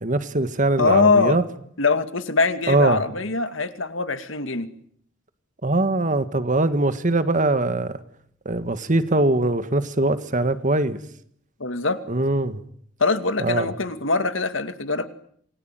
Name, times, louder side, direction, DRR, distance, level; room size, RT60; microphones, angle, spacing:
voice 1, 0.0-1.4 2.7-3.0 5.6-8.0 8.5-11.0 12.1-12.6 13.4-13.7, right 2 dB, 40° right, 12 dB, 1.8 m, -22 dB
voice 2, 0.8-1.4 1.8-4.7 11.6-12.0 13.0-15.1, left 3 dB, 70° left, 10 dB, 2.4 m, -22 dB
28.0 x 22.5 x 9.3 m, 0.67 s
head